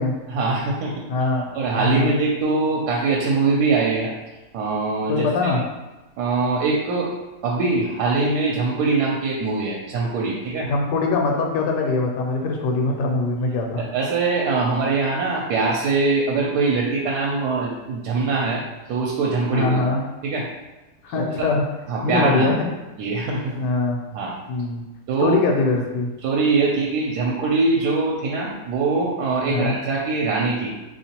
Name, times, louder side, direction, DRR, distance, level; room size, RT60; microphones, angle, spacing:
voice 1, 0.3-0.9 1.5-4.1 4.5-5.5 6.2-7.1 7.4-10.7 13.8-18.6 18.9-19.8 20.2-20.4 21.1-21.5 21.9-22.5 23.0-23.5 24.1-24.4 25.1-25.4 26.2-30.7, right 3 dB, 75° right, -2 dB, 1.1 m, -22 dB
voice 2, 1.1-1.5 1.8-2.1 5.1-5.6 10.7-13.9 19.5-20.0 21.0-21.6 22.0-22.7 23.5-24.0 24.5-24.8 25.2-26.1 29.5-29.8, left 3 dB, 90° left, 1 dB, 1.2 m, -22 dB
3.6 x 2.9 x 2.8 m, 1.1 s
omnidirectional pair, 1.8 m